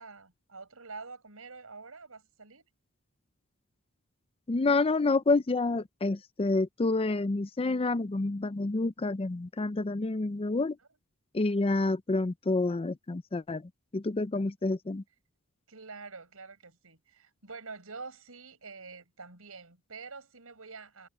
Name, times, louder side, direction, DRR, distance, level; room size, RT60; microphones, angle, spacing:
voice 1, 0.0-2.7 15.7-21.1, right 4 dB, 75° right, 5.9 m, -46 dB
voice 2, 4.5-10.8 11.3-15.0, left 3 dB, 25° left, 0.5 m, -28 dB
head